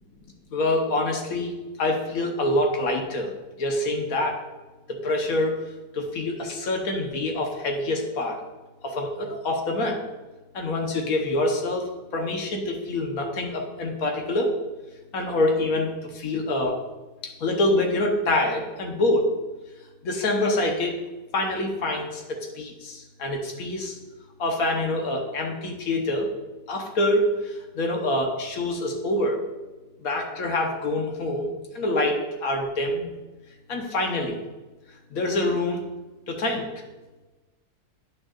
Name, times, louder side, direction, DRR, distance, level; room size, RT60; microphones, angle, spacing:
voice 1, 0.5-1.5 1.8-3.3 3.6-4.4 4.9-5.6 5.9-8.4 8.8-10.0 10.5-14.5 15.1-16.8 17.2-19.3 20.0-20.9 21.3-24.0 24.4-26.3 26.7-27.3 27.8-29.4 30.0-33.1 33.7-34.3 35.1-35.9 36.3-36.7, left 1 dB, 75° left, 2 dB, 1.4 m, -26 dB
9.2 x 6.3 x 2.4 m, 1.2 s
omnidirectional pair, 1.5 m